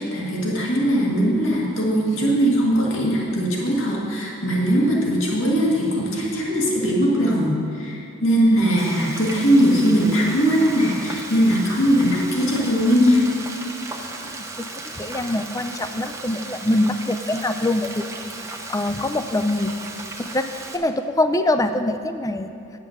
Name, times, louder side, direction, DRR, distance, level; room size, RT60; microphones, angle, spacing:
voice 1, 0.0-13.2, equal, 65° left, -3 dB, 1.9 m, -20 dB
Frying (food), 8.8-20.8, right 3 dB, 15° right, 0.7 m, -36 dB
voice 2, 14.2-14.7 15.0-18.1 18.4-19.7 20.2-22.5, left 1 dB, 15° left, 9 dB, 0.4 m, -24 dB
9.7 x 7.4 x 6.5 m, 2.7 s
head